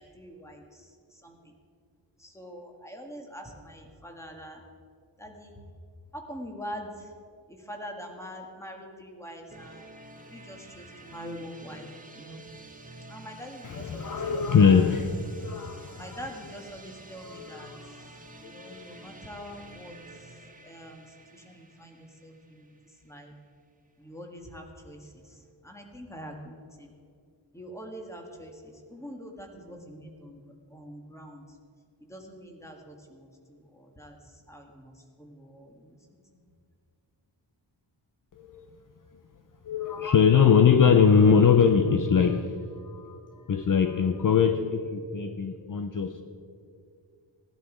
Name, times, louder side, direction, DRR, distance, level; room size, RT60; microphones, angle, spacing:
voice 1, 0.0-1.5 2.2-4.6 5.2-5.6 6.1-7.1 7.5-9.9 10.3-12.4 13.1-14.9 15.9-23.3 24.0-26.9 27.5-30.4 30.7-31.6 32.0-36.0 36.3-36.4, equal, 5° left, 2 dB, 1.7 m, -44 dB
sound 1, 9.5-23.2, right 2 dB, 15° right, 1.1 m, -49 dB
voice 2, 13.6-16.2 17.2-17.9 18.4-19.1 38.4-38.8 39.6-46.2, left 6 dB, 45° left, 7 dB, 0.6 m, -22 dB
17.0 x 11.0 x 5.0 m, 2.3 s
wide cardioid pair, 160°, 46 cm